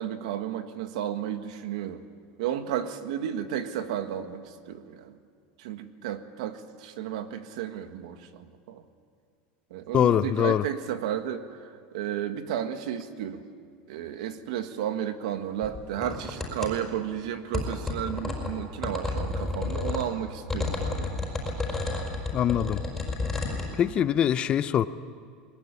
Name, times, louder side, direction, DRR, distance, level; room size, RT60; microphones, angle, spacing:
voice 1, 0.0-2.0 2.4-5.2 5.6-8.8 9.7-13.5 13.9-21.1 24.0-24.1, right 10 dB, 85° right, 8 dB, 1.7 m, -33 dB
voice 2, 9.9-10.6 22.3-22.8 23.8-24.9, left 10 dB, 30° left, 15 dB, 0.6 m, -23 dB
sound 1, 15.6-16.7 17.5-20.1 20.5-23.7, left 3 dB, 10° left, 4.8 m, -31 dB
21.5 x 20.5 x 9.9 m, 2.2 s
supercardioid pair, 155°, 3 cm